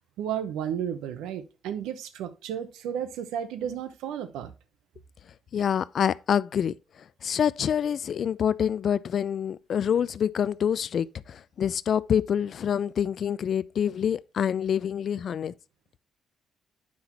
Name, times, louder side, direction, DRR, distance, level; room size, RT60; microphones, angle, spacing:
voice 1, 0.2-4.5, right 9 dB, 80° right, 0.8 m, -33 dB
voice 2, 5.5-6.7 7.2-15.5, left 8 dB, 60° left, 0.3 m, -26 dB
8.6 x 5.7 x 2.9 m
hypercardioid pair, 50°, 0 cm